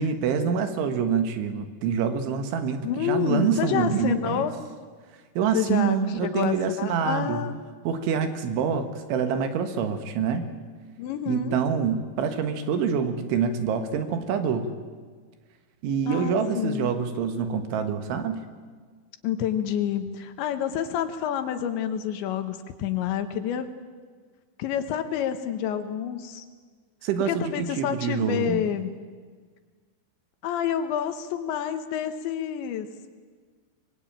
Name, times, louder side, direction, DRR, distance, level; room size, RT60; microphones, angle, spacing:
voice 1, 0.0-4.5 5.4-7.4 7.9-10.5 11.3-14.7 15.8-18.4 27.0-28.7, right 6 dB, 75° right, 8 dB, 4.0 m, -26 dB
voice 2, 2.8-4.5 5.5-7.6 11.0-11.6 16.1-16.9 19.2-23.7 24.6-26.5 27.3-29.0 30.4-32.9, left 9 dB, 75° left, 9 dB, 3.4 m, -28 dB
24.5 x 21.5 x 9.0 m, 1.5 s
omnidirectional pair, 5.5 m